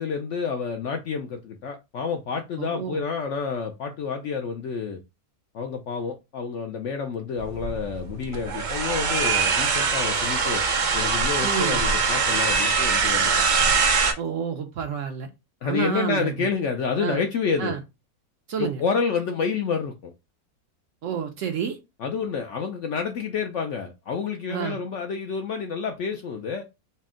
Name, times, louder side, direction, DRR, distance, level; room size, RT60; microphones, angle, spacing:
voice 1, 0.0-5.0 5.5-10.6 10.9-13.3 15.6-17.8 18.6-20.1 22.0-26.7, left 5 dB, 70° left, 0.7 m, -29 dB
voice 2, 2.6-3.0 11.4-11.8 14.2-15.3 15.6-16.5 17.0-17.2 17.6-17.8 18.5-18.8 21.0-21.8 24.5-24.8, right 7 dB, 65° right, 0.8 m, -29 dB
sound 1, 7.4-14.1, right 5 dB, 85° right, 0.4 m, -23 dB
4.2 x 2.1 x 3.6 m
omnidirectional pair, 1.7 m